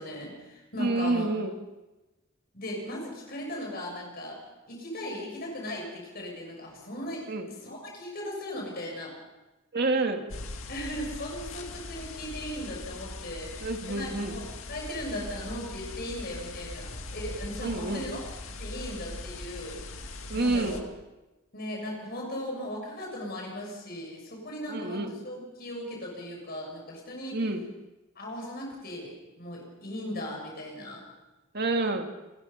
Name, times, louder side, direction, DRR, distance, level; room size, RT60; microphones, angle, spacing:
voice 1, 0.0-1.4 2.5-4.4 4.7-7.3 7.6-9.1 10.7-13.5 13.9-14.4 14.7-18.2 18.6-19.8 20.3-20.8 21.5-27.4 28.2-29.1 29.4-31.0, left 1 dB, 45° left, 0 dB, 7.0 m, -37 dB
voice 2, 0.8-1.6 7.3-7.5 9.7-10.2 13.6-14.4 17.6-18.1 20.3-20.9 24.7-25.1 27.3-27.7 31.5-32.1, right 2 dB, 50° right, 4 dB, 2.1 m, -28 dB
sound 1, 10.3-20.8, left 2 dB, 75° left, 2.1 m, -40 dB
29.5 x 16.0 x 5.7 m, 1.1 s
head